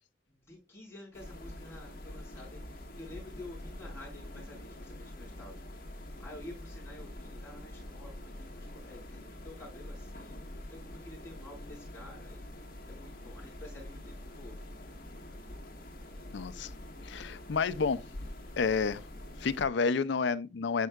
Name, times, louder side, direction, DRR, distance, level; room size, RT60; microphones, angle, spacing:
voice 1, 0.3-12.5 12.9-14.6, left 1 dB, 15° left, 4.7 m, -50 dB
sound 1, 1.1-19.7, left 1 dB, 50° left, 1.5 m, -45 dB
voice 2, 16.3-16.7 17.0-18.1 18.6-19.0 19.4-20.9, left 5 dB, 70° left, 0.5 m, -30 dB
11.0 x 4.6 x 2.4 m
head